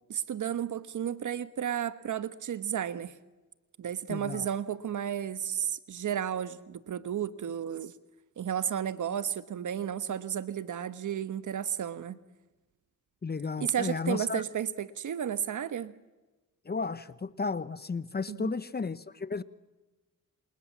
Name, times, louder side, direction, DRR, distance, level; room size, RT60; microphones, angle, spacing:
voice 1, 0.1-3.1 3.8-7.9 8.4-12.2 13.6-15.9 18.3-18.5, right 9 dB, 65° right, 13 dB, 1.2 m, -33 dB
voice 2, 4.1-4.5 13.2-14.4 16.7-19.4, left 4 dB, 30° left, 15 dB, 1.0 m, -33 dB
29.0 x 28.0 x 7.4 m, 1.2 s
cardioid pair, 80°, 33 cm